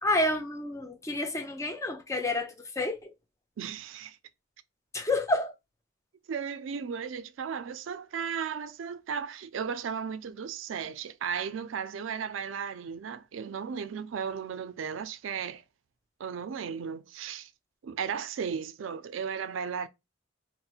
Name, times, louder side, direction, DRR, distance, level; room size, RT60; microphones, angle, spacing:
voice 1, 0.0-3.1 4.9-5.5, left 2 dB, 15° left, 0.5 m, -29 dB
voice 2, 3.6-4.2 6.3-15.6 16.2-17.5 17.8-19.9, right 6 dB, 75° right, 0.4 m, -35 dB
4.2 x 2.1 x 2.3 m
head